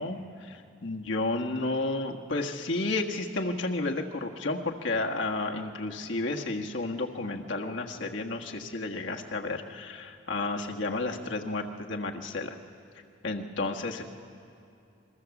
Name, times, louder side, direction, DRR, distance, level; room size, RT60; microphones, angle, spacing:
voice 1, 0.0-12.5 13.2-14.0, left 2 dB, 80° left, 2 dB, 1.6 m, -32 dB
27.0 x 22.5 x 7.2 m, 2.5 s
head